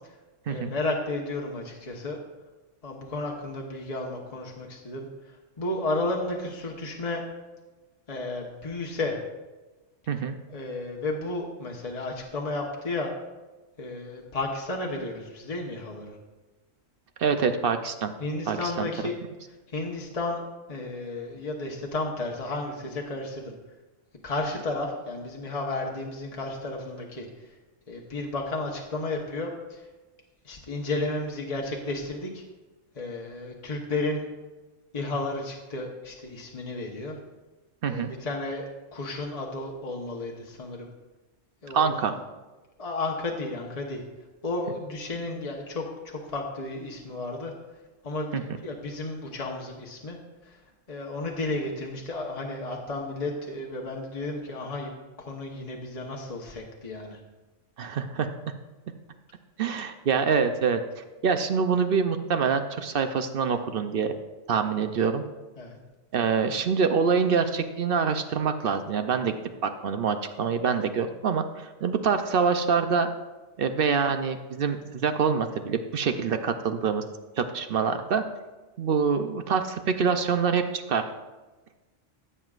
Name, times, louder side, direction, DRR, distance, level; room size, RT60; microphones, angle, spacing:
voice 1, 0.5-2.2 2.8-5.1 5.6-7.2 8.1-9.2 10.5-13.1 13.8-16.2 18.2-19.1 19.7-20.4 20.7-23.5 24.2-27.2 27.9-29.8 30.4-32.4 32.9-34.3 34.9-37.2 37.9-40.9 41.6-42.1 42.8-44.0 44.4-47.5 48.0-50.2 50.5-50.6 50.9-54.9 55.2-57.2 65.6-65.8, left 2 dB, 30° left, -1 dB, 1.0 m, -32 dB
voice 2, 17.2-18.1 18.5-18.9 37.8-38.1 41.7-42.2 48.3-48.4 57.8-58.3 59.6-64.1 64.5-65.2 66.1-69.3 69.6-73.1 73.6-77.0 77.4-78.2 78.8-81.0, right 6 dB, 55° right, 8 dB, 0.7 m, -25 dB
15.5 x 7.8 x 2.4 m, 1.2 s
omnidirectional pair, 1.3 m